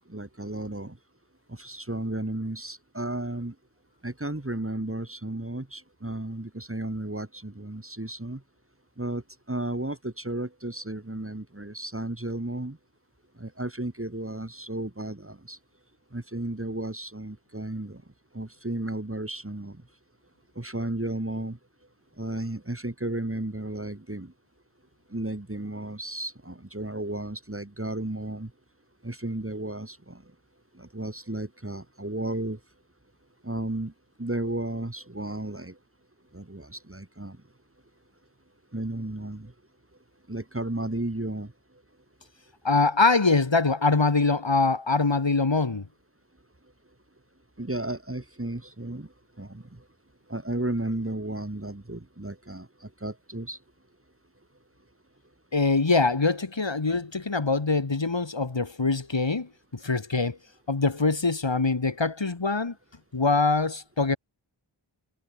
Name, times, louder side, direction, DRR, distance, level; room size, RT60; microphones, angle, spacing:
voice 1, 0.1-1.0 1.5-3.5 4.0-8.4 9.0-9.2 9.5-12.8 13.4-15.6 16.1-18.0 18.3-19.8 20.6-21.6 22.2-24.3 25.1-28.5 29.0-30.2 30.7-32.6 33.4-33.9 34.2-35.8 36.3-37.4 38.7-39.5 40.3-41.5 47.6-49.1 49.4-49.8 50.3-53.6, right 1 dB, 25° right, 4.0 m, -33 dB
voice 2, 42.6-45.9 55.5-60.4 60.7-62.7 63.1-64.2, left 3 dB, 60° left, 3.1 m, -24 dB
wide cardioid pair, 50°, 50 cm